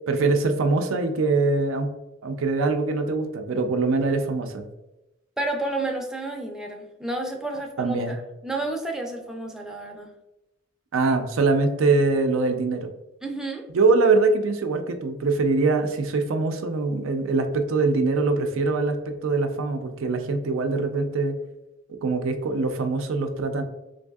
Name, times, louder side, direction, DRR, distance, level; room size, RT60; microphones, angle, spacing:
voice 1, 0.1-1.9 2.2-4.7 7.8-8.2 10.9-12.9 13.7-21.4 22.0-23.6, right 3 dB, 90° right, 6 dB, 0.4 m, -23 dB
voice 2, 5.4-10.1 13.2-13.6, right 2 dB, 5° right, 1 dB, 0.4 m, -31 dB
4.0 x 2.6 x 2.3 m, 0.94 s
head